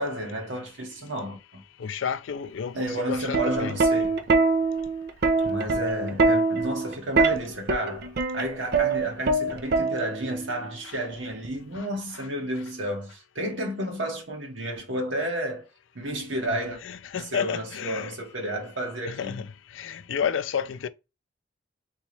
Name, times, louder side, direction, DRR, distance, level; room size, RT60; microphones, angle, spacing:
voice 1, 0.0-1.6 2.7-4.2 5.4-8.1 8.3-15.7 15.9-16.8 17.1-19.5, right 1 dB, 85° right, 1.5 m, -31 dB
voice 2, 1.8-3.8 16.9-18.1 19.1-19.4 19.7-20.9, left 7 dB, 85° left, 0.4 m, -31 dB
Plucked string instrument, 3.1-10.4 11.4-11.8, right 3 dB, 55° right, 0.5 m, -24 dB
3.5 x 3.0 x 3.2 m
head